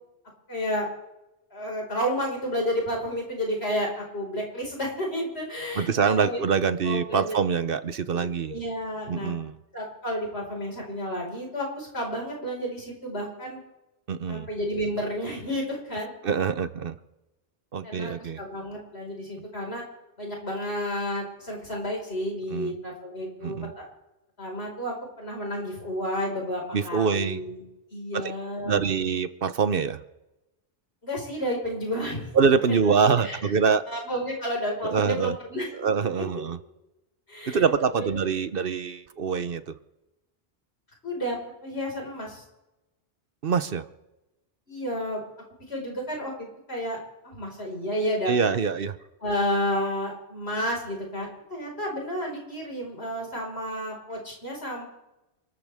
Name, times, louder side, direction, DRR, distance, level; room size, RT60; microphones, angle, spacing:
voice 1, 0.5-0.9 1.5-6.4 6.8-7.4 8.1-9.3 9.7-13.6 14.3-16.1 17.8-19.8 20.2-23.9 24.4-28.9 31.0-32.3 32.7-33.4 33.9-35.7 37.3-37.6 37.9-38.2 41.0-41.4 41.6-42.4 44.7-45.2 45.7-48.3 49.2-54.9, equal, 75° left, -1 dB, 5.3 m, -31 dB
voice 2, 5.8-8.6 9.1-9.6 14.1-14.5 16.2-16.9 17.7-18.4 22.5-22.7 23.4-23.7 26.7-27.4 28.1-28.3 28.6-30.0 32.3-33.8 34.8-35.4 35.7-36.6 37.5-39.7 43.4-43.8 48.3-48.9, right 6 dB, 60° right, 12 dB, 1.0 m, -25 dB
29.0 x 13.5 x 3.5 m, 0.97 s
omnidirectional pair, 1.1 m